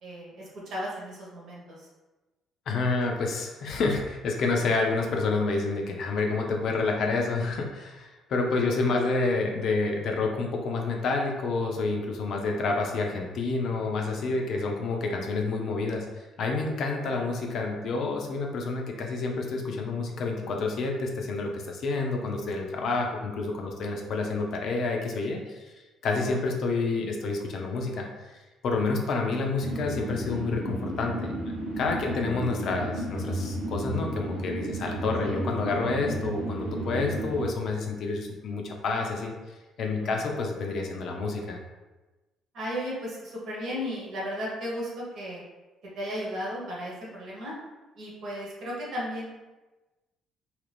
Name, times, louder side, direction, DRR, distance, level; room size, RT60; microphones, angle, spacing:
voice 1, 0.0-1.9 8.9-9.0 14.2-14.7 17.1-17.3 26.2-26.5 32.0-32.4 35.2-35.4 40.0-40.3 42.5-45.4 45.9-47.5 47.9-49.3, equal, 65° right, -5 dB, 1.2 m, -36 dB
voice 2, 2.7-25.7 26.0-28.1 28.6-31.3 31.8-39.3 39.8-41.6, left 3 dB, 60° left, 1 dB, 0.5 m, -29 dB
sound 1, 29.6-37.5, equal, 80° right, 0.6 m, -33 dB
2.8 x 2.5 x 3.3 m, 1.1 s
hypercardioid pair, 50°, 0 cm